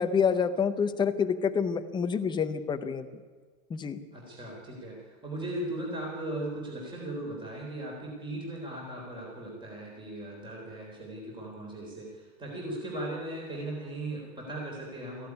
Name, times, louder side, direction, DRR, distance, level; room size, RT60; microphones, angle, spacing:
voice 1, 0.0-3.1 3.7-4.0, left 6 dB, 10° left, 9 dB, 0.6 m, -27 dB
voice 2, 4.1-15.3, right 1 dB, 10° right, -2 dB, 3.9 m, -38 dB
19.0 x 15.0 x 9.7 m, 1.5 s
supercardioid pair, 165°, 44 cm